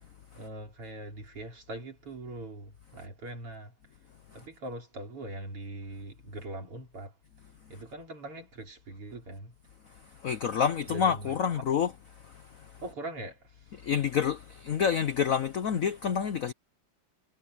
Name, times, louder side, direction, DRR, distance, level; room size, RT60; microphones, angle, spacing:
voice 1, 0.3-3.8 4.3-7.2 7.7-9.5 10.9-11.5 12.8-13.9, right 2 dB, 85° right, 6.1 m, -42 dB
voice 2, 10.2-11.9 13.8-16.5, left 7 dB, 80° left, 0.7 m, -27 dB
omnidirectional pair, 2.4 m